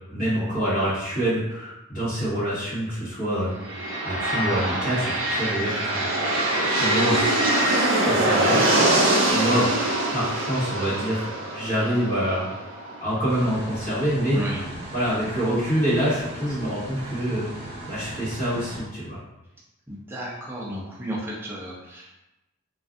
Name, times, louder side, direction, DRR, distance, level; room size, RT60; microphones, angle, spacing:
voice 1, 0.1-3.5 4.0-7.3 7.6-8.8 9.3-9.6 10.1-11.3 11.5-12.4 13.0-14.4 14.9-19.2, equal, 40° left, -13 dB, 1.3 m, -26 dB
sound 1, 3.6-13.4, right 1 dB, 65° right, 0.5 m, -23 dB
sound 2, 13.3-18.8, right 1 dB, 30° right, 0.9 m, -38 dB
voice 2, 14.3-14.7 19.9-22.2, right 1 dB, 10° right, -5 dB, 0.4 m, -33 dB
2.5 x 2.4 x 2.4 m, 0.94 s
head